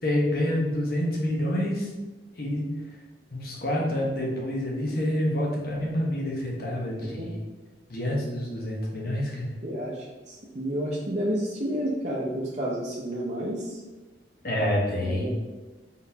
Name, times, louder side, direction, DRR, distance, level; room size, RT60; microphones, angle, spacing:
voice 1, 0.0-1.9 2.4-2.7 3.3-7.4 7.9-9.5 14.4-15.3, left 1 dB, 55° left, -3 dB, 1.1 m, -27 dB
voice 2, 7.0-7.3 9.6-13.8 15.0-15.3, equal, 40° right, -5 dB, 0.6 m, -31 dB
4.0 x 4.0 x 2.8 m, 1.2 s
head